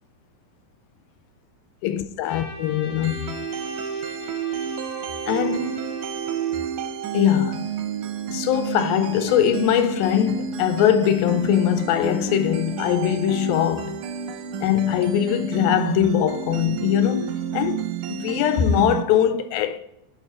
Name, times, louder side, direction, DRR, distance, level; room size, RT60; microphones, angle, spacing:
voice 1, 1.8-3.4 5.3-5.8 7.1-7.7 8.3-14.0 14.6-19.8, left 10 dB, 85° left, 2.3 m, -22 dB
Trumpet, 2.2-6.9, left 3 dB, 65° left, 2.3 m, -39 dB
sound 1, 3.0-19.0, right 8 dB, 80° right, 1.7 m, -30 dB
11.0 x 4.5 x 4.3 m
omnidirectional pair, 4.2 m